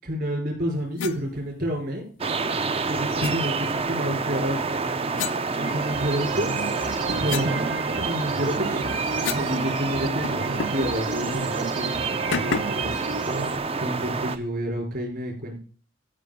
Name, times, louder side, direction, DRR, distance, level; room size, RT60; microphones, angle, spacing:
voice 1, 0.0-2.0 2.7-4.8 5.6-6.5 7.2-8.9 9.2-13.4 13.8-15.6, equal, 55° right, 1 dB, 5.1 m, -29 dB
sound 1, 1.0-1.2 3.2-3.4 5.1-6.2 6.7-9.6 9.8-9.9 10.2-10.9 11.3-11.4 12.3-12.9, left 6 dB, 70° left, 0.6 m, -33 dB
sound 2, 2.2-14.4, right 4 dB, 30° right, 0.6 m, -28 dB
sound 3, 5.6-13.6, right 5 dB, 70° right, 1.1 m, -33 dB
14.0 x 5.8 x 5.2 m, 0.38 s
head